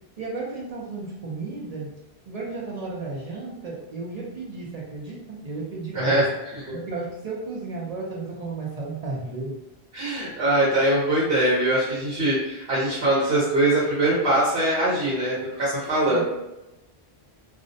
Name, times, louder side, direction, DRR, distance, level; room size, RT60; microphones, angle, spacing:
voice 1, 0.2-1.9 2.3-6.3 6.7-9.6 16.1-16.2, right 3 dB, 50° right, -3 dB, 0.5 m, -33 dB
voice 2, 5.9-6.2 9.9-16.2, right 1 dB, 65° right, -8 dB, 1.0 m, -22 dB
2.4 x 2.0 x 2.6 m, 0.94 s
omnidirectional pair, 1.1 m